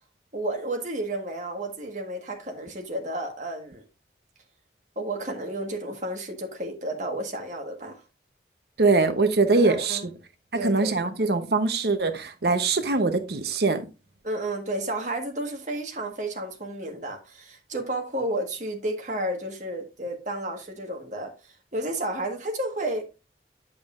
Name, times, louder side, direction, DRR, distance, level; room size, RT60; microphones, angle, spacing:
voice 1, 0.3-3.8 4.9-8.0 9.5-10.1 10.5-10.9 14.2-23.0, right 1 dB, 45° right, 1.6 m, -32 dB
voice 2, 8.8-10.0 10.6-13.8, right 3 dB, 65° right, 0.9 m, -22 dB
8.5 x 7.2 x 2.5 m
head